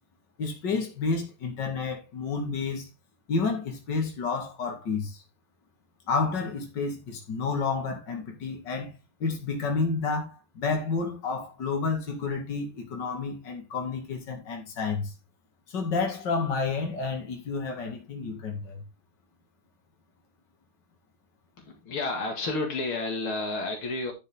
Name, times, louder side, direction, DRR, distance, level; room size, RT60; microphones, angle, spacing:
voice 1, 0.4-2.9 3.3-5.2 6.1-8.9 9.2-15.1 15.7-18.8, left 4 dB, 55° left, 2.8 m, -30 dB
voice 2, 21.6-24.1, left 2 dB, 75° left, 2.9 m, -31 dB
10.5 x 6.3 x 3.6 m
omnidirectional pair, 2.3 m